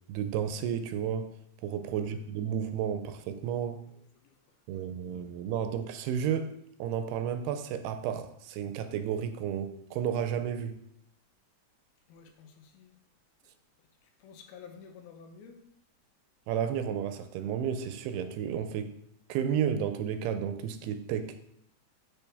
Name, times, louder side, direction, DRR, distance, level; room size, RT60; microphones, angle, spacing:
voice 1, 0.1-1.3 1.6-3.8 4.7-6.5 6.8-10.8 16.5-18.9 19.3-21.4, right 8 dB, 85° right, 9 dB, 2.6 m, -32 dB
voice 2, 3.9-5.2 12.1-13.0 13.4-15.6, left 6 dB, 75° left, 5 dB, 2.6 m, -53 dB
8.0 x 7.0 x 3.5 m, 0.73 s
omnidirectional pair, 4.6 m